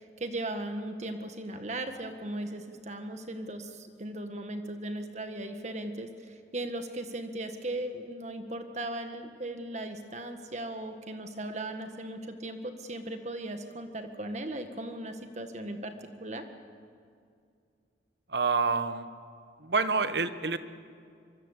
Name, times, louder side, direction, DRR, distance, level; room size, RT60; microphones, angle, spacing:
voice 1, 0.0-15.9 16.2-16.4, right 1 dB, 40° right, 6 dB, 1.7 m, -37 dB
voice 2, 18.3-19.1 19.6-20.6, right 4 dB, 70° right, 11 dB, 1.3 m, -27 dB
24.5 x 24.5 x 8.3 m, 2.3 s
head